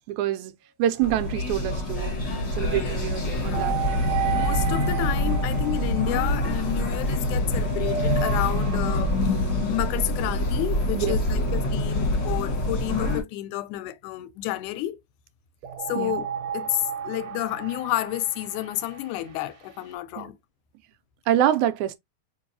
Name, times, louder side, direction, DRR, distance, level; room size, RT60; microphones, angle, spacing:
voice 1, 0.1-0.5 0.8-2.2 2.6-3.8 10.9-11.2 16.0-16.2 20.2-20.3 21.3-22.0, right 11 dB, 85° right, 1.9 m, -26 dB
sound 1, 1.0-13.2, left 1 dB, 40° left, 1.1 m, -25 dB
sound 2, 3.5-7.2 7.6-10.1 15.6-19.9, right 10 dB, 70° right, 2.0 m, -34 dB
voice 2, 4.3-9.4 9.7-15.0 15.9-16.3 16.5-20.4, left 15 dB, 85° left, 2.0 m, -30 dB
4.5 x 2.9 x 2.6 m
omnidirectional pair, 3.4 m